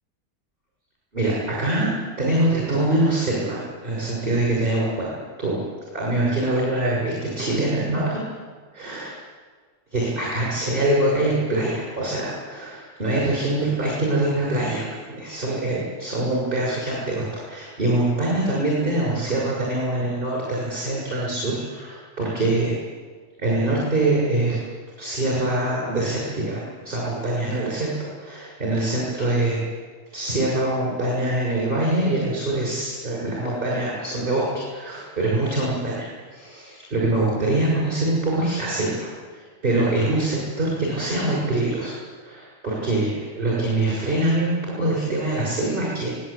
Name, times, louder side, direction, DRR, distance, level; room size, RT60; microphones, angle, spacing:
voice 1, 1.1-1.9 2.2-5.6 5.9-8.2 8.7-9.1 9.9-22.8 23.4-24.6 25.0-29.6 30.1-39.1 39.3-41.9 42.2-46.1, right 2 dB, 30° right, -5 dB, 6.4 m, -24 dB
25.0 x 18.0 x 8.5 m, 1.5 s
omnidirectional pair, 1.7 m